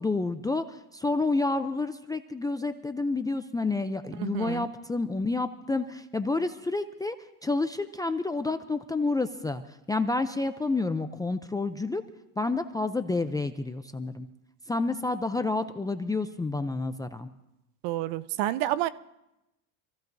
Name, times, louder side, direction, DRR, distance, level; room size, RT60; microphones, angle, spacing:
voice 1, 0.0-7.2 7.4-9.6 9.9-12.0 12.4-14.3 14.7-17.3, left 3 dB, 10° left, 0.4 m, -29 dB
voice 2, 4.2-4.7 17.8-18.9, right 14 dB, 60° right, 0.8 m, -29 dB
26.0 x 15.5 x 2.6 m
supercardioid pair, 115°, 47 cm